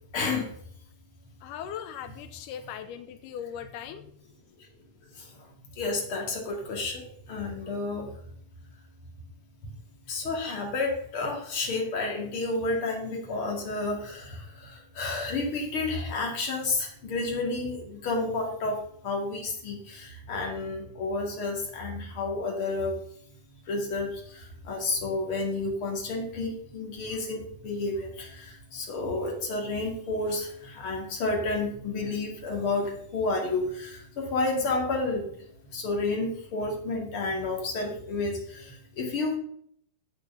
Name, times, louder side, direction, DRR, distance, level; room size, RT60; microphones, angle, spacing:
voice 1, 0.1-0.5 5.1-5.5 5.8-8.1 10.1-23.0 23.7-35.3 35.7-39.4, left 3 dB, 40° left, 0 dB, 3.0 m, -31 dB
voice 2, 1.4-4.1, left 9 dB, 85° left, 9 dB, 2.3 m, -39 dB
8.6 x 8.3 x 5.7 m, 0.66 s
omnidirectional pair, 3.7 m